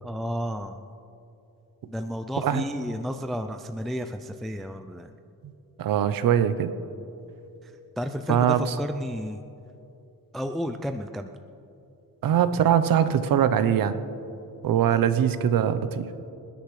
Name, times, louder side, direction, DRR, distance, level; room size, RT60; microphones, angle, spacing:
voice 1, 0.0-0.8 1.8-5.1 7.6-9.4 10.3-11.3 14.9-15.0, equal, ahead, 6 dB, 0.4 m, -32 dB
voice 2, 5.8-6.7 8.3-8.7 12.2-14.0 14.6-16.1, right 9 dB, 65° right, 12 dB, 0.8 m, -22 dB
26.0 x 10.0 x 3.3 m, 2.8 s
cardioid pair, 110°, 38 cm